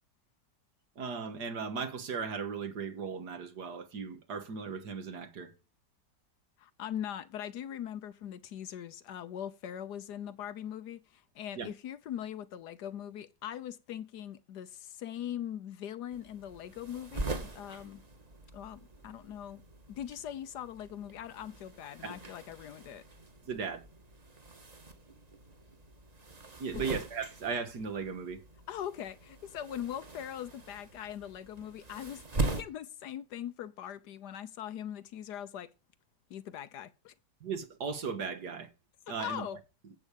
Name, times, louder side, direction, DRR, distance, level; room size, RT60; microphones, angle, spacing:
voice 1, 1.0-5.5 11.6-11.7 22.0-22.2 23.5-23.8 26.6-28.4 37.4-38.7 39.1-39.5, right 5 dB, 75° right, 2.1 m, -37 dB
voice 2, 6.6-18.0 18.5-19.6 19.9-23.0 28.7-35.7 36.3-37.1 39.2-39.6, left 10 dB, 80° left, 1.4 m, -41 dB
sound 1, 16.1-32.6, right 2 dB, 25° right, 1.4 m, -42 dB
14.5 x 4.9 x 8.4 m
omnidirectional pair, 1.8 m